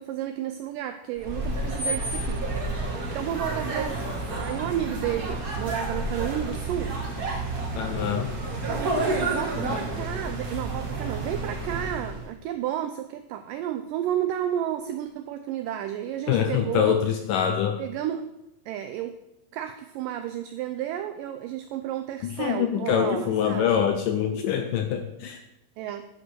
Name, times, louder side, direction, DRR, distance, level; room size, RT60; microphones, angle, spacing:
voice 1, 0.0-4.1 4.4-7.0 8.7-17.0 17.8-18.3 18.7-19.1 19.5-23.7 25.8-26.1, right 11 dB, 85° right, 8 dB, 1.9 m, -32 dB
sound 1, 1.2-12.3, right 2 dB, 60° right, 0.9 m, -30 dB
voice 2, 7.8-8.3 16.3-17.8 22.2-25.4, left 8 dB, 80° left, 6 dB, 2.0 m, -25 dB
9.8 x 5.1 x 6.1 m, 0.87 s
omnidirectional pair, 4.4 m